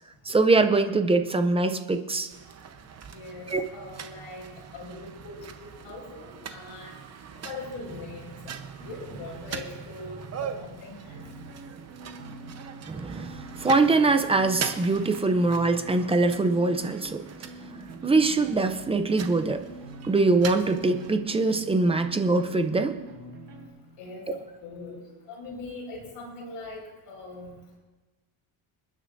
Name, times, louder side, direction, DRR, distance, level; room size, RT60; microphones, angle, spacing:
voice 1, 0.3-2.3 3.5-3.6 12.9-13.3 13.6-17.2 17.7-19.7 20.0-23.0, right 3 dB, 15° right, 8 dB, 0.3 m, -23 dB
sound 1, 2.3-21.1, right 7 dB, 30° right, 0.8 m, -41 dB
voice 2, 3.1-4.5 4.7-6.9 7.4-8.4 8.8-11.2 24.0-25.0 25.3-26.8 27.1-27.5, left 2 dB, 80° left, -1 dB, 5.0 m, -41 dB
sound 2, 11.1-23.7, right 2 dB, 60° right, 4.9 m, -44 dB
28.0 x 10.0 x 2.5 m, 1.2 s
cardioid pair, 170°, 49 cm